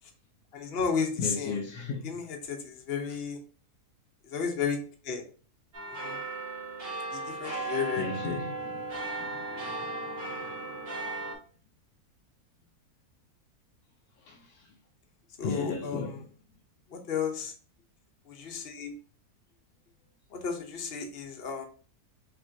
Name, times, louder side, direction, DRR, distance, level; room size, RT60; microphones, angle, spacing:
voice 1, 0.5-1.6 2.0-3.4 4.2-4.8 5.0-5.2 5.9-6.2 7.1-8.0 15.4-16.2 16.9-17.5 18.3-18.9 20.3-21.7, left 6 dB, 45° left, 1.0 m, -33 dB
voice 2, 1.2-2.1 3.1-3.2 8.0-10.6 14.2-14.7 15.4-16.3, left 4 dB, 80° left, 1.2 m, -37 dB
sound 1, 5.7-11.4, right 2 dB, 40° right, 2.0 m, -36 dB
5.4 x 3.0 x 2.7 m
omnidirectional pair, 1.6 m